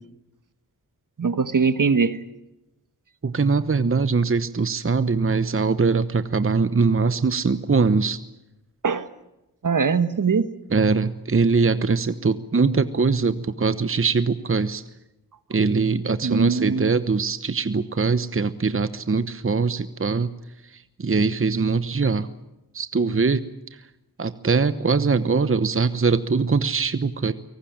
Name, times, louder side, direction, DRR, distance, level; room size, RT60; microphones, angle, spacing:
voice 1, 1.2-2.2 8.8-9.1 9.6-10.5 16.2-16.9, right 5 dB, 55° right, 12 dB, 1.4 m, -21 dB
voice 2, 3.2-8.2 10.7-14.8 15.5-20.3 20.7-22.3 22.7-23.4 24.2-27.3, right 4 dB, 35° right, 12 dB, 1.1 m, -22 dB
23.5 x 19.0 x 8.8 m, 0.93 s
cardioid pair, 50°, 39 cm